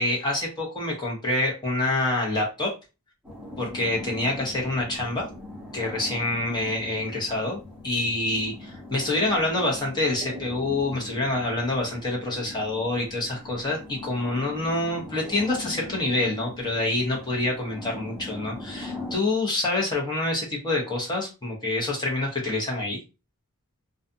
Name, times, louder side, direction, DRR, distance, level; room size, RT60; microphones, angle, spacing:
voice 1, 0.0-2.7 3.6-5.2 5.7-23.0, left 2 dB, 20° left, -2 dB, 0.9 m, -27 dB
sound 1, 3.2-19.2, left 2 dB, 5° right, 1.0 m, -40 dB
2.4 x 2.3 x 2.6 m, 0.29 s
head